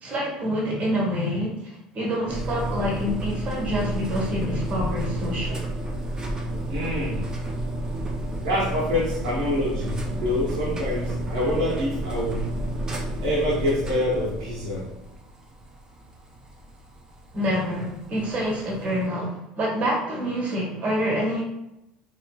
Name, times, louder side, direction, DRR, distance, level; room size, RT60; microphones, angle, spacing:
voice 1, 0.0-5.6 17.3-21.4, equal, 40° right, -2 dB, 1.1 m, -27 dB
sound 1, 2.3-19.0, right 1 dB, 20° right, 0.6 m, -31 dB
voice 2, 6.7-7.2 8.4-12.5 13.2-14.9, left 1 dB, 80° right, -6 dB, 1.1 m, -26 dB
3.0 x 2.7 x 2.3 m, 0.89 s
hypercardioid pair, 80°, 3 cm